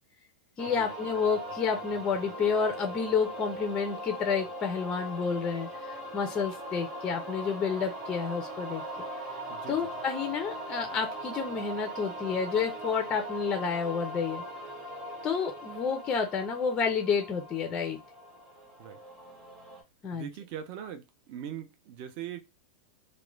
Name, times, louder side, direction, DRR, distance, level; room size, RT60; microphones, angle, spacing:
voice 1, 0.6-8.8 9.7-14.4 15.2-18.0 20.0-20.3, left 6 dB, 20° left, 0.4 m, -30 dB
sound 1, 0.6-19.8, equal, 15° right, 0.8 m, -40 dB
voice 2, 9.5-9.9 18.8-19.0 20.1-22.4, right 9 dB, 40° right, 0.4 m, -41 dB
2.4 x 2.1 x 3.0 m
supercardioid pair, 165°, 5 cm